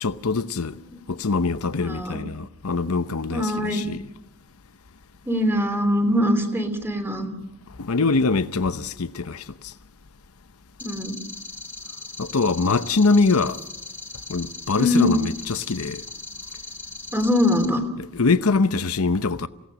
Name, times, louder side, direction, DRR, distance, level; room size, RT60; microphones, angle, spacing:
voice 1, 0.0-0.8 1.1-4.0 7.8-9.7 12.2-13.6 14.3-16.0 18.0-19.5, left 4 dB, 90° left, 0.8 m, -23 dB
voice 2, 1.8-2.2 3.3-3.8 5.2-7.3 10.8-11.2 14.8-15.2 17.1-17.8, left 1 dB, 10° right, 3.0 m, -22 dB
sound 1, 10.8-17.7, left 2 dB, 5° left, 2.9 m, -39 dB
28.5 x 17.5 x 6.2 m
head